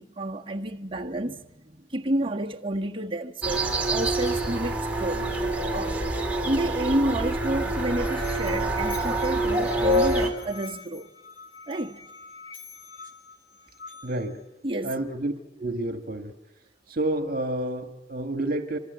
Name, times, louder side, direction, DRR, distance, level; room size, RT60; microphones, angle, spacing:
voice 1, 0.0-5.2 5.7-6.0 6.4-11.1 11.7-12.0 14.6-14.9, right 1 dB, 25° right, 1.5 m, -30 dB
sound 1, 3.4-10.3, right 1 dB, 5° right, 3.8 m, -26 dB
Musical instrument, 7.7-14.4, left 4 dB, 85° left, 4.1 m, -45 dB
voice 2, 14.0-14.4 14.8-15.3 15.6-16.3 16.9-18.8, right 1 dB, 50° right, 1.8 m, -29 dB
27.0 x 26.0 x 8.2 m
head